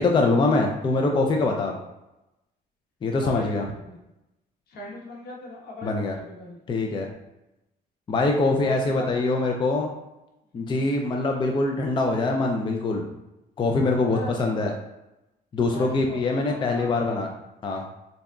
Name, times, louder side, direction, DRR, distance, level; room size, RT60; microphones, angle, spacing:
voice 1, 0.0-1.8 3.0-3.7 5.8-6.1 6.7-7.1 8.1-9.9 10.5-13.1 13.6-14.7 15.5-17.3 17.6-17.9, left 3 dB, 30° left, 2 dB, 0.4 m, -23 dB
voice 2, 3.2-4.0 4.7-6.6 8.6-9.3 14.0-14.7 15.7-17.2, left 1 dB, 70° left, -3 dB, 1.2 m, -38 dB
3.9 x 3.6 x 2.3 m, 0.95 s
cardioid pair, 110°, 17 cm